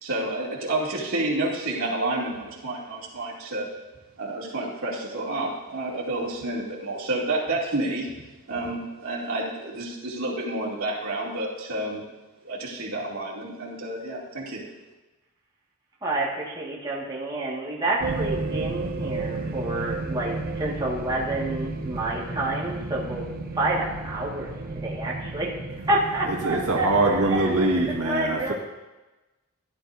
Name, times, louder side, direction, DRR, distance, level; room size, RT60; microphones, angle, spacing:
voice 1, 0.0-3.7 4.2-8.1 8.5-12.0 12.4-14.6, right 2 dB, 70° right, -4 dB, 2.6 m, -29 dB
voice 2, 16.0-23.2 23.5-25.5 25.9-28.5, right 2 dB, 20° right, -5 dB, 1.8 m, -29 dB
sound 1, 18.0-28.0, right 3 dB, 40° right, 0.7 m, -33 dB
voice 3, 26.4-28.5, right 2 dB, 85° right, -2 dB, 1.7 m, -23 dB
17.0 x 11.0 x 2.7 m, 1.1 s
head